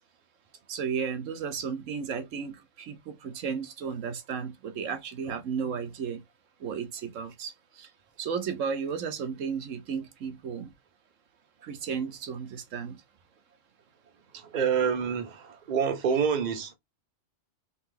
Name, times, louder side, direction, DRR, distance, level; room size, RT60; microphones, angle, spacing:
voice 1, 0.7-6.2 6.6-7.9 8.2-10.7 11.6-13.0, right 6 dB, 80° right, 1.2 m, -34 dB
voice 2, 14.3-16.7, right 7 dB, 40° right, 0.9 m, -27 dB
3.6 x 2.9 x 3.8 m
omnidirectional pair, 1.3 m